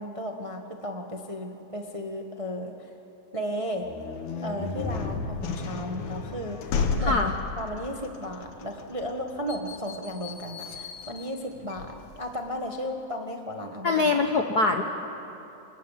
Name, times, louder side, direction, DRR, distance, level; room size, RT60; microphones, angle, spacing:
voice 1, 0.0-2.9 3.3-3.9 4.4-7.3 7.6-14.1, equal, 20° right, 3 dB, 0.8 m, -34 dB
sound 1, 3.8-12.5, left 4 dB, 80° left, 2.8 m, -33 dB
voice 2, 7.0-7.3 13.8-14.8, left 3 dB, 55° left, 4 dB, 1.1 m, -23 dB
28.0 x 26.0 x 7.5 m, 2.9 s
omnidirectional pair, 3.3 m